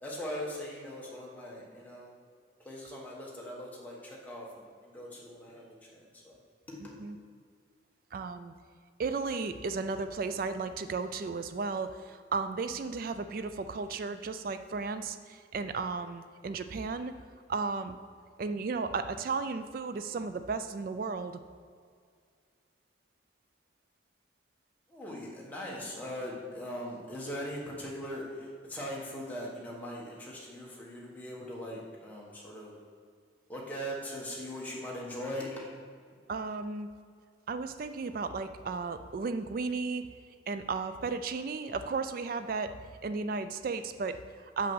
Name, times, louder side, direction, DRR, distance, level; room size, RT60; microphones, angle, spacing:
voice 1, 0.0-2.1 2.6-6.4 6.7-7.0 24.9-32.8 33.5-35.7, equal, 10° left, -4 dB, 1.3 m, -40 dB
voice 2, 8.1-8.5 9.0-17.2 17.5-18.0 18.4-21.4 36.3-36.9 37.5-40.1 40.5-42.8 43.0-44.7, right 4 dB, 45° right, 10 dB, 0.3 m, -34 dB
6.1 x 5.8 x 6.3 m, 2.1 s
head